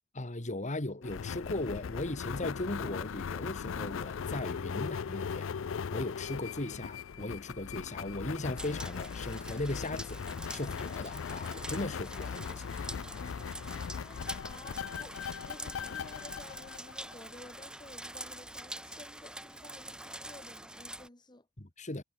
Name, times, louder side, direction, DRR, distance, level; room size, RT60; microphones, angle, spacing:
voice 1, 0.1-5.5 5.9-10.2 10.5-12.8 21.6-22.0, left 2 dB, 40° left, 2.2 m, -37 dB
sound 1, 1.0-17.5, left 6 dB, 75° left, 0.4 m, -39 dB
sound 2, 8.6-21.1, right 1 dB, 5° right, 3.4 m, -45 dB
voice 2, 14.0-21.5, left 2 dB, 20° left, 1.9 m, -53 dB
head